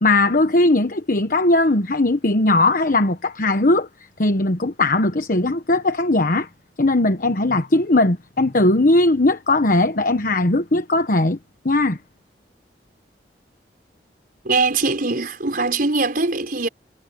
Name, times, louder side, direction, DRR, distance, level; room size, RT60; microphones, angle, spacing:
voice 1, 0.0-3.9 4.2-6.5 6.8-11.4 11.6-12.0, left 2 dB, 50° left, 1.2 m, -18 dB
voice 2, 14.5-16.7, right 3 dB, 55° right, 5.2 m, -21 dB
head